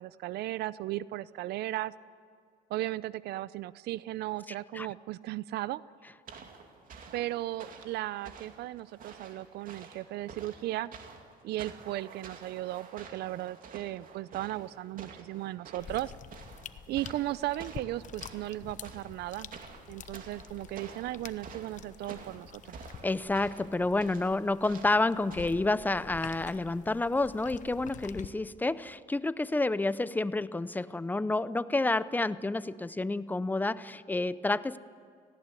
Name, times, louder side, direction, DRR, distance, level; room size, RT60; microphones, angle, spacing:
voice 1, 0.0-1.9 2.7-5.8 7.1-10.9 11.4-16.1 16.9-19.5 19.9-22.7, right 15 dB, 75° right, 18 dB, 0.5 m, -36 dB
sound 1, 6.3-25.5, right 5 dB, 55° right, 2.6 m, -50 dB
sound 2, 15.8-28.3, left 8 dB, 50° left, 1.0 m, -48 dB
voice 2, 23.0-34.8, left 2 dB, 10° left, 16 dB, 0.6 m, -29 dB
18.5 x 16.5 x 9.8 m, 2.2 s
cardioid pair, 110°, 17 cm